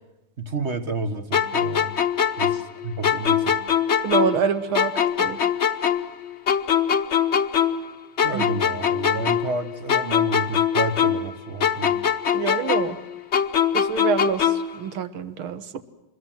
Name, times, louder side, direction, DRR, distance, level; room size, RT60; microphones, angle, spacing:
voice 1, 0.4-1.9 2.4-3.6 8.2-12.0, right 3 dB, 35° right, 9 dB, 1.6 m, -30 dB
sound 1, 1.3-4.5 4.7-7.9 8.2-11.3 11.6-14.8, left 8 dB, 40° left, 1.1 m, -22 dB
voice 2, 4.0-4.9 5.2-5.4 8.3-8.6 12.3-13.0 13.7-15.8, right 7 dB, 85° right, 12 dB, 2.3 m, -26 dB
26.0 x 21.5 x 7.7 m, 0.94 s
omnidirectional pair, 2.3 m